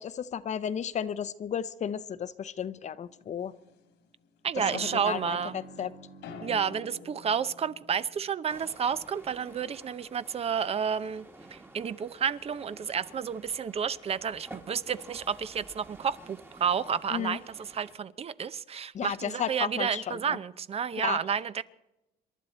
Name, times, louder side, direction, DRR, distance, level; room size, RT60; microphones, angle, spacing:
voice 1, 0.0-3.5 4.7-5.9 17.1-17.4 18.9-20.4 21.0-21.2, left 8 dB, 45° left, 0.8 m, -34 dB
sound 1, 3.0-3.9 4.5-8.2, left 2 dB, 85° left, 2.3 m, -45 dB
voice 2, 4.4-5.5 6.4-11.3 11.5-21.6, right 7 dB, 35° right, 0.7 m, -31 dB
sound 2, 8.5-18.0, right 2 dB, 15° right, 1.5 m, -52 dB
27.0 x 12.0 x 4.3 m
cardioid pair, 110°, 17 cm